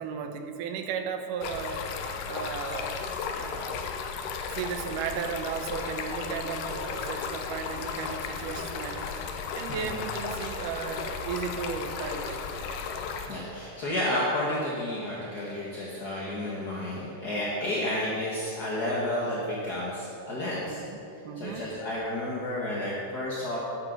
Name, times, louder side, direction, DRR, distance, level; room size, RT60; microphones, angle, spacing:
voice 1, 0.0-1.9 2.3-2.9 3.4-3.9 4.5-9.1 9.5-12.8 20.7-21.0 21.2-21.7, right 6 dB, 75° right, 6 dB, 2.3 m, -35 dB
Stream, 1.4-13.3, left 5 dB, 75° left, 2.3 m, -35 dB
voice 2, 9.4-9.9 12.8-20.8 21.3-23.6, left 1 dB, 50° left, -6 dB, 1.1 m, -31 dB
12.0 x 12.0 x 3.9 m, 2.7 s
omnidirectional pair, 4.0 m